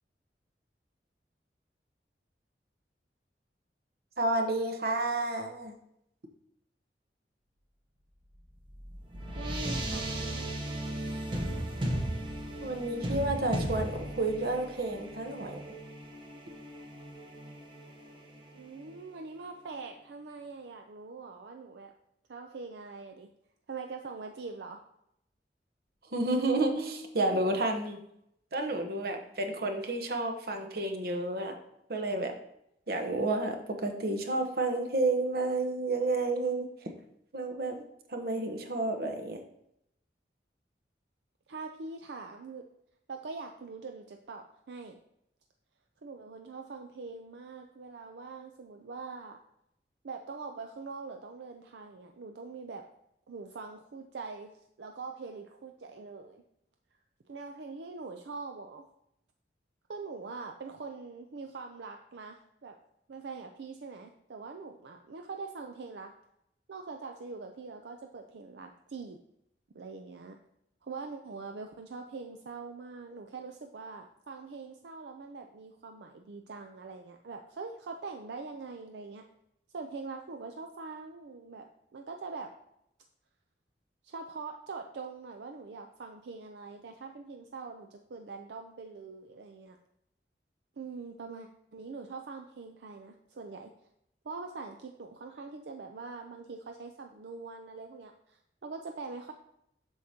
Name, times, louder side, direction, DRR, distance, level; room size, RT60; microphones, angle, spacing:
voice 1, 4.2-5.7 12.6-15.6 26.0-28.0 28.5-31.6 31.9-32.4 32.9-36.9 37.3-37.8 38.1-39.4, right 2 dB, 60° right, 4 dB, 1.0 m, -30 dB
sound 1, 8.2-19.0, right 1 dB, 30° right, 1.0 m, -37 dB
voice 2, 9.4-10.5 18.5-21.9 22.3-23.3 23.7-24.8 41.5-42.6 43.1-45.0 46.0-49.4 50.0-52.8 53.3-54.5 54.8-56.4 57.3-58.9 59.9-62.8 63.1-66.1 66.7-69.2 69.7-70.4 70.8-79.2 79.7-81.6 81.9-82.5 84.0-89.8 90.8-93.7 94.2-99.3, right 4 dB, 75° right, 4 dB, 0.5 m, -43 dB
7.8 x 6.4 x 2.8 m, 0.78 s
head